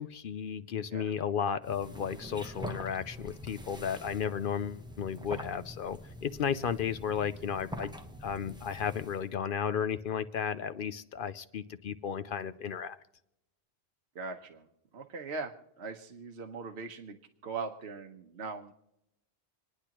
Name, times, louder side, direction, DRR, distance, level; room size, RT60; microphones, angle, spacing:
voice 1, 0.0-7.9 8.2-13.0, left 7 dB, 60° left, 12 dB, 0.7 m, -34 dB
sound 1, 1.6-9.3, equal, 5° right, 0.7 m, -45 dB
voice 2, 14.1-14.7 14.9-17.2 17.4-18.7, right 4 dB, 70° right, 4 dB, 1.2 m, -40 dB
28.0 x 10.0 x 3.0 m, 0.85 s
omnidirectional pair, 1.1 m